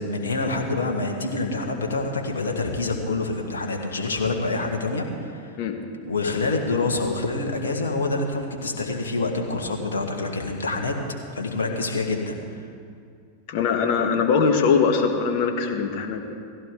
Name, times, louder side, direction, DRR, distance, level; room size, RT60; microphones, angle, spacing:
voice 1, 0.0-5.6 6.1-10.9 11.3-12.3, left 3 dB, 70° left, 2 dB, 1.7 m, -26 dB
voice 2, 13.5-16.3, left 5 dB, 50° left, 5 dB, 1.6 m, -22 dB
17.5 x 15.5 x 3.9 m, 2.3 s
figure-of-eight pair, 90°, 0 cm